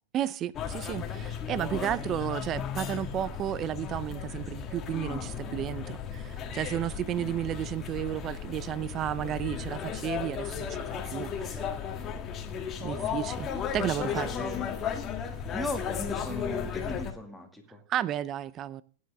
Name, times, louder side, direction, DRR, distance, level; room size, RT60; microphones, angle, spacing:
voice 1, 0.1-11.7 12.8-14.3 17.9-18.8, right 11 dB, 30° right, 0.6 m, -33 dB
sound 1, 0.5-17.1, left 7 dB, 25° left, 1.8 m, -35 dB
voice 2, 1.5-2.1 12.9-13.2 14.0-14.7 15.5-17.8, left 2 dB, ahead, 2.3 m, -38 dB
17.0 x 9.4 x 3.6 m
supercardioid pair, 145°, 0 cm